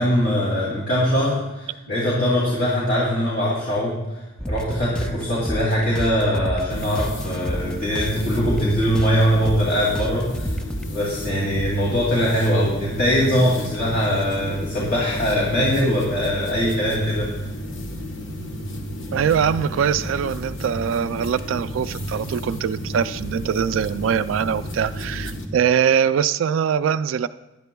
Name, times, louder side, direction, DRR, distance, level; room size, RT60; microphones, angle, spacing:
voice 1, 0.0-4.0 4.5-10.5 10.9-17.3, equal, 50° left, -5 dB, 2.6 m, -22 dB
sound 1, 4.4-10.9, equal, 5° left, 0.4 m, -31 dB
sound 2, 6.7-25.5, equal, 70° left, 1.3 m, -32 dB
voice 2, 19.1-27.3, right 8 dB, 80° right, 12 dB, 0.3 m, -22 dB
19.0 x 11.0 x 2.3 m, 1.0 s
head